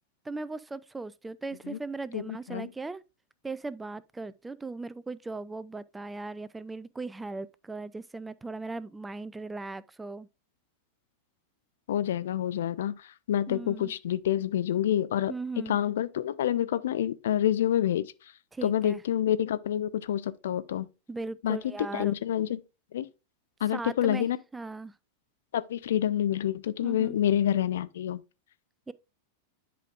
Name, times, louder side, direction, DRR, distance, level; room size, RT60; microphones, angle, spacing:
voice 1, 0.2-3.0 3.4-10.3 13.5-13.9 15.3-15.8 18.5-19.0 21.1-22.2 23.7-24.3 24.5-24.9 26.8-27.1 28.9-29.0, right 3 dB, 10° right, 0.4 m, -38 dB
voice 2, 2.1-2.7 11.9-15.3 15.7-18.1 18.6-20.9 21.4-21.6 21.9-22.6 22.9-23.1 23.6-24.4 25.5-28.2, left 11 dB, 60° left, 0.5 m, -28 dB
11.0 x 5.0 x 2.4 m
figure-of-eight pair, 90°, 0 cm